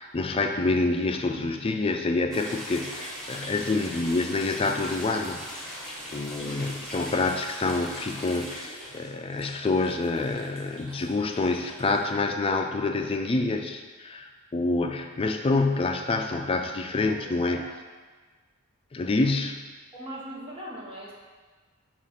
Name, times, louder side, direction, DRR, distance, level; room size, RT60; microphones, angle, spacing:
voice 1, 0.0-5.4 6.1-17.6 18.9-19.6, left 3 dB, 25° left, 5 dB, 0.4 m, -27 dB
sound 1, 2.3-12.0, equal, ahead, 0.9 m, -40 dB
voice 2, 6.4-6.8 16.9-17.7 19.9-21.1, right 1 dB, 25° right, -4 dB, 1.1 m, -41 dB
7.1 x 2.5 x 5.6 m, 1.4 s
head